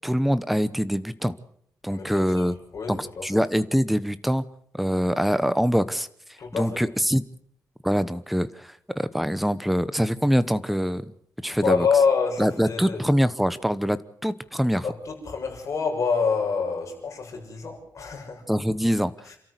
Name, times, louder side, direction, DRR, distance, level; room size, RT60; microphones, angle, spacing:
voice 1, 0.0-1.3 1.8-2.5 2.9-4.4 4.7-6.1 6.5-7.2 7.8-11.1 11.4-11.9 12.4-14.8 18.5-19.1, equal, ahead, 15 dB, 1.0 m, -24 dB
voice 2, 1.9-2.5 2.7-3.4 6.4-6.8 11.6-13.0 14.8-18.4, left 5 dB, 45° left, 1 dB, 6.8 m, -26 dB
28.5 x 13.5 x 8.2 m, 0.69 s
wide cardioid pair, 155°, 7 cm